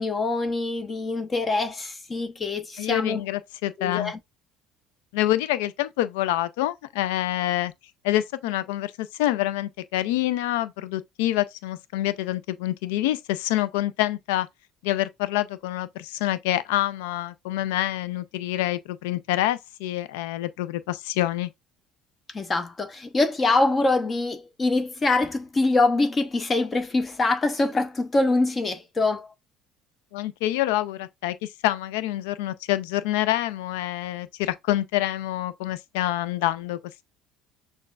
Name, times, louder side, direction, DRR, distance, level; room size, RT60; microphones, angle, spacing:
voice 1, 0.0-3.2 3.8-4.2 22.3-29.3, left 2 dB, 30° left, 0.7 m, -24 dB
voice 2, 2.8-4.1 5.1-7.7 8.0-14.5 14.8-21.5 30.1-36.8, left 14 dB, 75° left, 0.3 m, -26 dB
6.5 x 2.3 x 2.3 m
hypercardioid pair, 60°, 0 cm